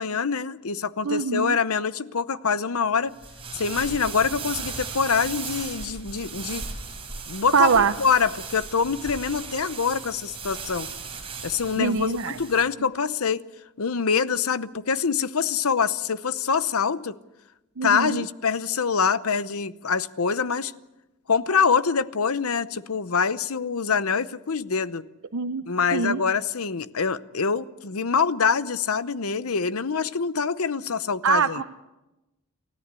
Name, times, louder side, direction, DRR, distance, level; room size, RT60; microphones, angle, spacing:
voice 1, 0.0-3.1 3.5-6.6 7.3-10.9 11.4-13.4 13.8-17.1 17.8-20.7 21.3-25.1 25.7-31.6, left 6 dB, 70° left, 0.8 m, -25 dB
voice 2, 1.0-1.6 7.5-7.9 11.8-12.4 17.8-18.2 25.3-25.6 25.9-26.2 31.2-31.6, right 5 dB, 65° right, 0.8 m, -23 dB
sound 1, 3.1-12.6, right 5 dB, 25° right, 4.6 m, -37 dB
29.0 x 13.5 x 8.3 m
head